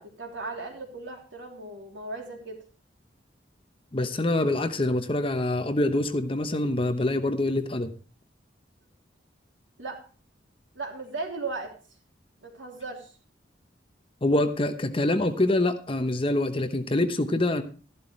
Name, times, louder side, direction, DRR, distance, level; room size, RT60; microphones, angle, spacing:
voice 1, 0.0-2.6 9.8-10.0 10.7-11.7 12.4-13.1, right 3 dB, 85° right, 1 dB, 3.2 m, -36 dB
voice 2, 3.9-7.9 14.2-17.6, left 1 dB, 30° left, 8 dB, 0.9 m, -25 dB
13.5 x 11.5 x 3.2 m, 0.37 s
head